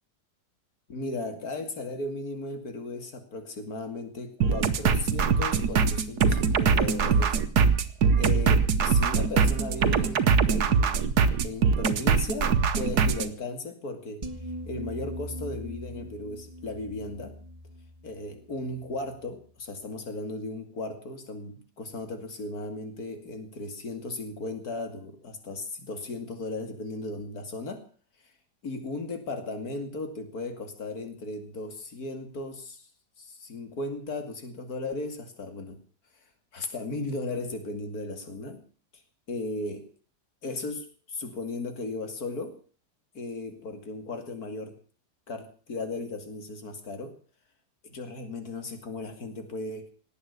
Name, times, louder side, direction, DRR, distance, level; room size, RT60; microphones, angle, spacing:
voice 1, 0.9-7.4 8.1-11.0 11.4-14.2 14.7-17.4 18.0-27.8 28.6-32.9 33.2-35.8 36.5-38.6 39.3-39.9 40.4-42.6 43.1-44.8 45.3-47.1 47.8-49.9, left 2 dB, 65° left, 7 dB, 3.0 m, -36 dB
sound 1, 4.4-13.3, right 5 dB, 70° right, 1.6 m, -23 dB
sound 2, 14.2-19.4, equal, 25° right, 1.5 m, -41 dB
18.5 x 8.6 x 8.2 m, 0.43 s
omnidirectional pair, 1.7 m